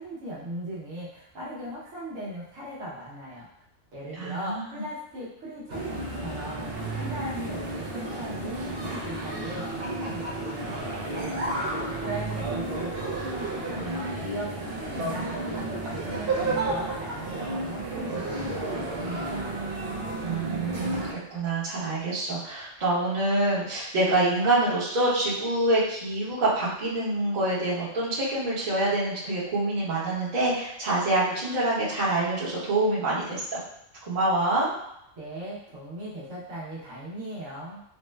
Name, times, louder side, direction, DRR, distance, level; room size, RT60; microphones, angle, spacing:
voice 1, 0.0-3.5 3.9-6.6 6.9-19.5 35.1-37.8, equal, 80° right, -7 dB, 1.3 m, -38 dB
voice 2, 4.2-4.8 20.2-33.6 34.0-34.7, right 2 dB, 40° right, -9 dB, 1.0 m, -26 dB
sound 1, 5.7-21.1, right 2 dB, 60° right, 0.8 m, -32 dB
4.1 x 2.1 x 2.2 m, 0.79 s
omnidirectional pair, 1.3 m